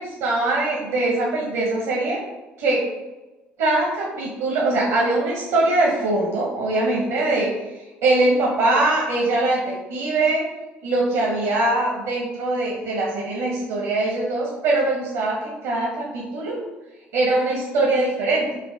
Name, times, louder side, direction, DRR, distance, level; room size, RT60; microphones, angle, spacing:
voice 1, 0.0-2.2 2.6-2.8 3.6-7.5 8.0-10.4 10.8-16.6 17.1-18.5, right 2 dB, 75° right, -3 dB, 0.9 m, -22 dB
5.4 x 2.5 x 3.4 m, 1.1 s
hypercardioid pair, 55°, 5 cm